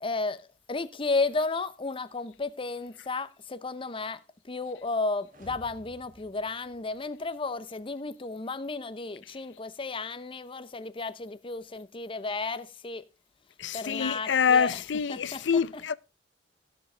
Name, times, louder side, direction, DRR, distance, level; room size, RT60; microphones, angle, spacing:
voice 1, 0.0-4.2 4.5-13.1 13.7-15.8, left 3 dB, 30° left, 0.7 m, -33 dB
sound 1, 5.2-7.4, equal, 50° right, 2.7 m, -53 dB
voice 2, 13.6-15.9, left 6 dB, 90° left, 0.5 m, -26 dB
17.0 x 7.5 x 3.3 m
head